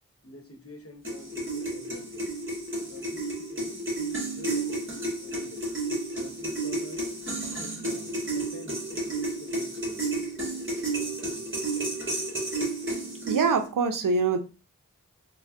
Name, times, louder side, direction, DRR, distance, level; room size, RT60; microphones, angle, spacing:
voice 1, 0.2-2.3 2.7-5.7 6.1-7.0 7.4-10.2 10.9-11.7, left 2 dB, 45° left, 0.9 m, -47 dB
sound 1, 1.0-13.7, right 2 dB, 40° right, 1.3 m, -32 dB
voice 2, 13.3-14.4, right 4 dB, 85° right, 0.5 m, -24 dB
3.3 x 2.1 x 3.5 m
cardioid pair, 40°, 32 cm